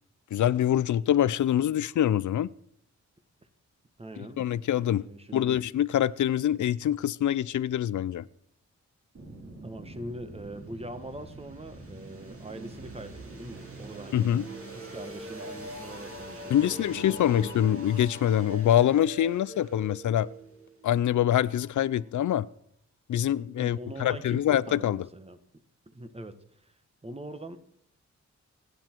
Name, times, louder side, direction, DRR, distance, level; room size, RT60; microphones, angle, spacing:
voice 1, 0.3-2.5 4.2-5.1 5.3-8.3 14.1-14.4 16.5-20.3 20.8-22.5 23.1-25.1, left 11 dB, 90° left, 0.6 m, -25 dB
voice 2, 4.0-4.4 5.0-5.6 9.6-14.3 14.7-17.7 18.6-18.8 23.5-25.4 25.9-26.4 26.6-26.7 27.0-27.6, right 1 dB, 20° right, 1.4 m, -42 dB
sound 1, 9.1-22.0, right 1 dB, 50° right, 4.2 m, -44 dB
27.5 x 9.7 x 4.6 m
wide cardioid pair, 125°, 29 cm